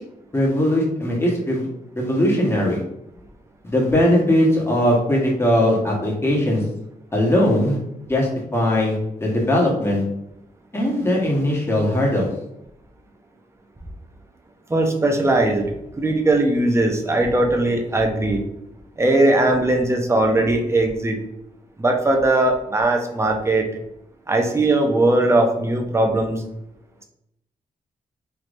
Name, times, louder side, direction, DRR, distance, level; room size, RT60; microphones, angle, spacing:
voice 1, 0.3-1.7 1.9-2.8 3.6-6.6 7.1-7.8 8.1-10.0 10.7-12.3, left 1 dB, 15° left, -2 dB, 1.2 m, -19 dB
voice 2, 14.7-18.4 19.0-21.2 21.8-23.7 24.3-26.4, right 2 dB, 20° right, 2 dB, 0.6 m, -19 dB
3.3 x 2.9 x 2.5 m, 0.83 s
cardioid pair, 75°, 15 cm